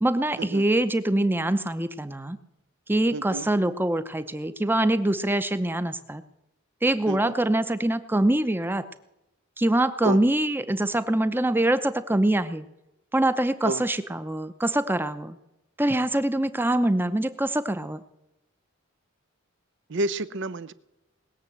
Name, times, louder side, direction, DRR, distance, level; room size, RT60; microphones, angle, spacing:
voice 1, 0.0-2.4 2.9-6.2 6.8-8.8 9.6-12.6 13.1-15.4 15.8-18.0, right 1 dB, 10° right, 12 dB, 0.7 m, -24 dB
voice 2, 3.1-3.5 7.1-7.3 10.0-10.2 13.6-13.8 19.9-20.7, right 2 dB, 60° right, 16 dB, 0.7 m, -29 dB
20.0 x 7.3 x 8.0 m, 0.91 s
head